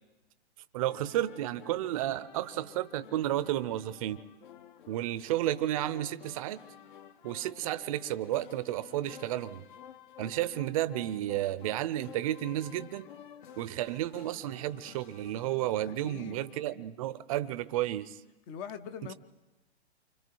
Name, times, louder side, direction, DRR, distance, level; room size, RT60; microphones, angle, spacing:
voice 1, 0.7-4.2 4.9-6.6 7.2-9.6 10.2-13.1 13.6-18.2, right 13 dB, 30° right, 0.7 m, -32 dB
sound 1, 0.9-16.7, left 9 dB, 45° left, 1.0 m, -52 dB
voice 2, 16.0-16.5 18.5-19.1, left 7 dB, 20° left, 0.6 m, -42 dB
29.0 x 25.0 x 4.6 m
hypercardioid pair, 145°, 34 cm